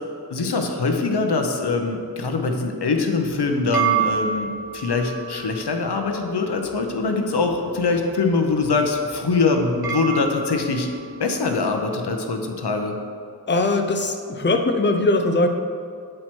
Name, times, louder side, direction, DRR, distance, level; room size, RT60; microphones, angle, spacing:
voice 1, 0.3-10.9 11.2-12.9, left 3 dB, 85° left, 4 dB, 0.7 m, -23 dB
sound 1, 3.1-11.6, right 7 dB, 65° right, 0.9 m, -30 dB
voice 2, 13.5-15.5, left 2 dB, 30° left, 5 dB, 0.5 m, -20 dB
7.6 x 4.4 x 4.4 m, 2.3 s
wide cardioid pair, 50°, 39 cm